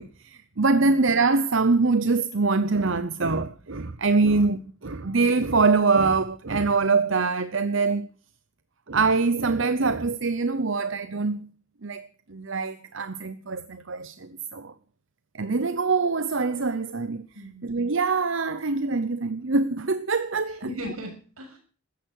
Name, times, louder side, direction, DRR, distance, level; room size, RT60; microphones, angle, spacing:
voice 1, 0.0-8.1 8.9-11.5 11.8-14.7 15.3-17.3 17.6-20.6, right 4 dB, 60° right, 0.8 m, -24 dB
voice 2, 17.3-17.7 20.6-21.6, equal, 80° right, 7.4 m, -37 dB
16.0 x 14.0 x 6.5 m
head